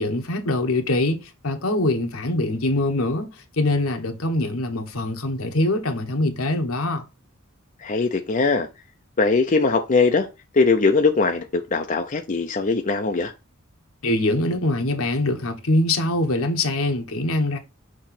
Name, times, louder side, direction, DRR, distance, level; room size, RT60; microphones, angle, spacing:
voice 1, 0.0-3.3 3.6-7.0 14.0-17.6, left 2 dB, 75° left, 1.2 m, -23 dB
voice 2, 7.8-8.7 9.2-10.3 10.5-13.3, left 4 dB, 40° left, 0.6 m, -20 dB
6.5 x 3.1 x 5.8 m
head